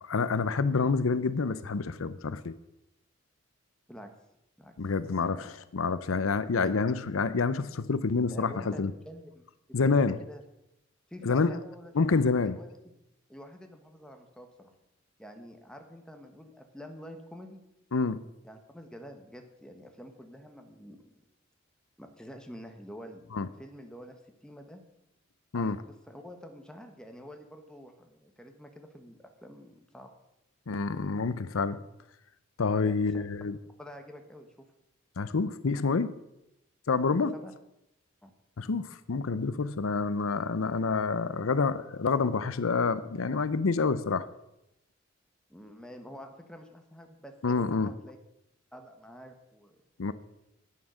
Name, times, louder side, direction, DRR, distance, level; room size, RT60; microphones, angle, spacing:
voice 1, 0.0-2.6 4.8-5.4 5.7-8.9 9.7-10.2 11.2-11.6 11.9-12.6 17.9-18.2 23.3-23.5 25.5-25.8 30.7-31.8 32.6-33.6 35.2-36.2 36.9-37.3 38.6-44.3 47.4-47.9 50.0-50.1, left 4 dB, 85° left, 15 dB, 0.6 m, -28 dB
voice 2, 5.1-5.5 8.3-9.4 9.8-10.0 10.3-10.4 11.1-12.7 13.3-14.7 15.2-17.6 18.4-21.1 22.0-24.8 25.5-30.1 32.8-33.2 33.8-34.7 37.1-37.5 38.2-38.3 45.5-48.2 48.7-49.8, equal, 5° left, 4 dB, 1.2 m, -48 dB
11.0 x 9.3 x 6.3 m, 0.87 s
head